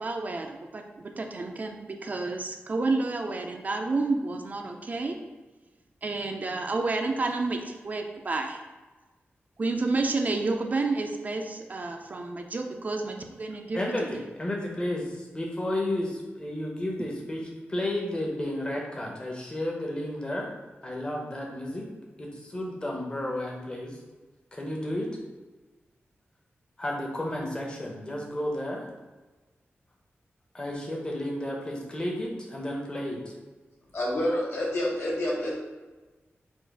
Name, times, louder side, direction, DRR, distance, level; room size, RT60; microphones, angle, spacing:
voice 1, 0.0-0.4 1.6-1.7 2.1-2.4 2.7-4.2 4.5-4.6 4.9-5.1 6.0-7.6 7.9-8.5 9.6-11.4 11.7-11.9 12.5-13.0 13.7-13.8, right 3 dB, 40° right, 3 dB, 0.4 m, -28 dB
voice 2, 13.7-20.5 20.8-21.9 22.2-24.0 24.5-25.1 26.8-28.9 30.5-33.2, left 1 dB, 20° left, -1 dB, 0.8 m, -32 dB
voice 3, 33.9-35.6, left 1 dB, 70° left, -4 dB, 1.3 m, -28 dB
4.4 x 2.5 x 4.6 m, 1.2 s
wide cardioid pair, 175°, 4 cm